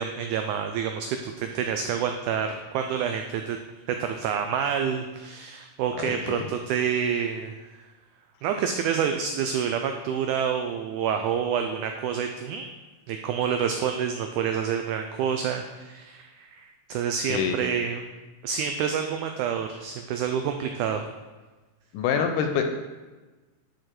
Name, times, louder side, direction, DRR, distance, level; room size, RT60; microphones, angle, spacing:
voice 1, 0.0-3.6 3.9-7.5 8.4-12.7 13.1-18.1 18.4-21.0, right 7 dB, 90° right, 5 dB, 1.7 m, -28 dB
voice 2, 5.9-6.5 17.3-17.6 21.9-22.6, left 7 dB, 80° left, 5 dB, 2.0 m, -26 dB
10.0 x 4.7 x 4.4 m, 1.2 s
omnidirectional pair, 4.0 m